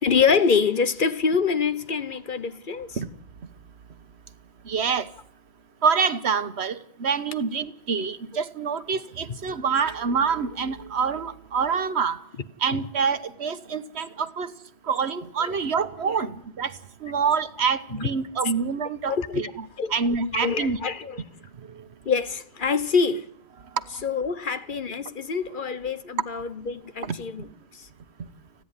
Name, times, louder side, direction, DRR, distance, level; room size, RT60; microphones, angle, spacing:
voice 1, 0.0-3.0 15.4-15.5 16.0-16.1 18.0-18.1 19.1-19.4 19.8-19.9 20.3-21.2 22.0-23.3 24.0-27.5, left 5 dB, 55° left, 1.1 m, -25 dB
voice 2, 4.7-5.1 5.8-12.2 12.6-14.5 14.9-16.7 17.0-20.8 27.0-27.2, right 6 dB, 85° right, 1.4 m, -26 dB
30.0 x 10.5 x 9.5 m
omnidirectional pair, 1.1 m